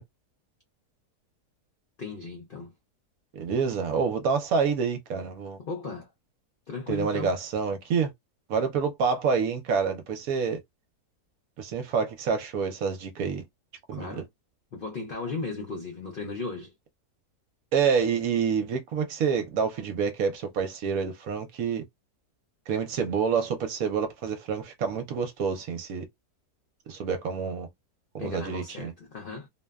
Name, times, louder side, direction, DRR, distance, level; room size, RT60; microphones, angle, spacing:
voice 1, 2.0-2.7 5.6-6.1 6.7-7.3 13.9-14.3 14.7-16.7 28.2-29.5, left 3 dB, 65° left, 0.5 m, -36 dB
voice 2, 3.3-5.6 6.9-8.1 8.5-10.6 11.6-13.4 13.9-14.1 17.7-21.8 22.7-26.0 26.9-27.7 28.1-28.9, right 6 dB, 70° right, 1.0 m, -27 dB
2.9 x 2.1 x 2.2 m
omnidirectional pair, 1.7 m